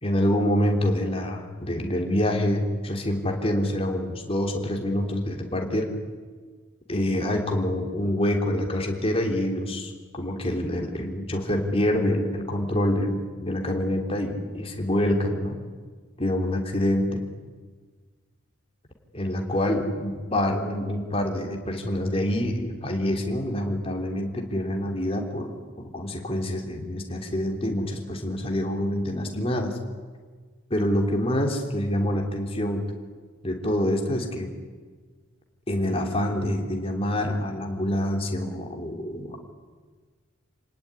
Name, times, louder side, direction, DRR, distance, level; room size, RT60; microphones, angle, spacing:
voice 1, 0.0-5.9 6.9-15.6 16.2-17.2 19.1-29.8 30.7-32.9 33.4-34.5 35.7-39.4, left 1 dB, 25° left, 2 dB, 3.4 m, -26 dB
28.0 x 19.0 x 9.9 m, 1.5 s
head